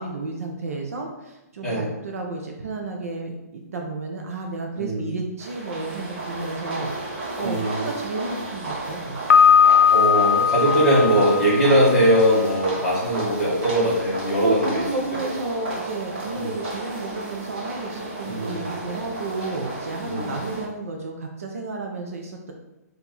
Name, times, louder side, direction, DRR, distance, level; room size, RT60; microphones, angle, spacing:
voice 1, 0.0-9.2 14.4-22.5, right 3 dB, 60° right, 2 dB, 0.7 m, -32 dB
voice 2, 4.7-5.2 7.4-7.8 9.9-14.8 16.3-16.5 18.2-18.6 20.0-20.4, equal, ahead, -13 dB, 1.5 m, -21 dB
sound 1, 5.4-20.7, right 2 dB, 40° right, 1.0 m, -33 dB
Piano, 9.3-12.2, left 7 dB, 85° left, 0.4 m, -18 dB
4.5 x 2.6 x 4.0 m, 0.96 s
hypercardioid pair, 170°, 9 cm